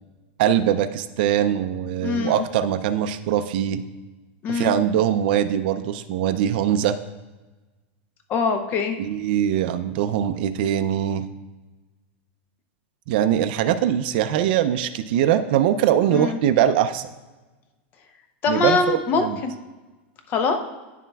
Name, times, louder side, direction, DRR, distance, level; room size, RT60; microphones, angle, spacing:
voice 1, 0.4-3.8 4.5-7.0 9.0-11.2 13.1-17.1 18.5-19.4, right 10 dB, 55° right, 10 dB, 0.4 m, -22 dB
voice 2, 2.0-2.5 4.4-4.7 8.3-9.0 16.1-16.4 18.4-19.5 20.3-20.6, left 4 dB, 30° left, 6 dB, 0.7 m, -23 dB
9.3 x 7.2 x 2.3 m, 1.2 s
supercardioid pair, 155°, 6 cm